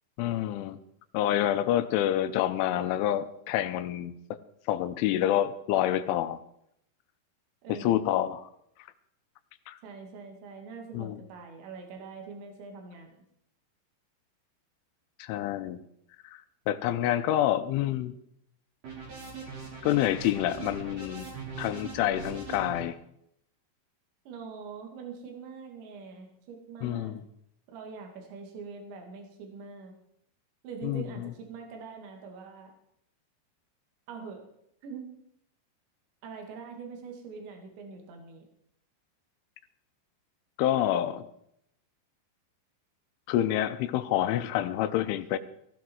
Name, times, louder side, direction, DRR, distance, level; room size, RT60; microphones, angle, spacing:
voice 1, 0.2-0.8 1.1-4.1 4.7-6.4 7.7-8.5 9.7-9.8 10.9-11.2 15.2-15.8 16.3-18.1 19.8-21.3 21.6-23.0 26.8-27.2 30.8-31.3 40.6-41.2 43.3-45.4, left 12 dB, 85° left, 11 dB, 3.2 m, -27 dB
voice 2, 7.6-8.0 9.8-13.2 24.3-27.2 27.7-29.9 30.6-32.7 34.1-34.4 34.8-35.1 36.2-38.4, right 5 dB, 70° right, 3 dB, 4.6 m, -43 dB
sound 1, 18.8-22.8, right 5 dB, 50° right, 6.3 m, -41 dB
16.5 x 15.5 x 4.7 m, 0.74 s
omnidirectional pair, 5.6 m